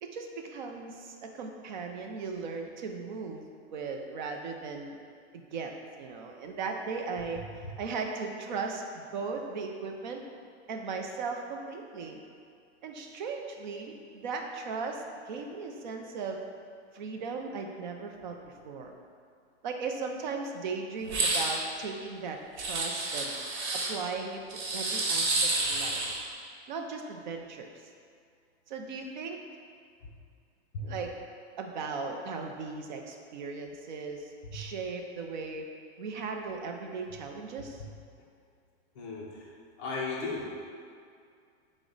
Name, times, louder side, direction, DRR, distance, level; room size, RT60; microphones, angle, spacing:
voice 1, 0.0-3.4 3.7-5.0 5.3-10.2 10.7-12.2 12.8-16.4 16.9-18.4 18.6-18.9 19.6-23.3 23.9-26.0 26.7-27.7 28.7-29.4 30.8-31.1 31.6-35.6 36.0-37.8, right 4 dB, 45° right, 3 dB, 0.4 m, -37 dB
sound 1, 21.0-21.6 22.6-23.9 24.5-26.2, right 2 dB, 70° right, 1.0 m, -29 dB
voice 2, 39.0-39.5 39.8-40.5, left 3 dB, 25° left, -6 dB, 0.4 m, -36 dB
6.1 x 2.1 x 3.9 m, 2.2 s
supercardioid pair, 175°, 34 cm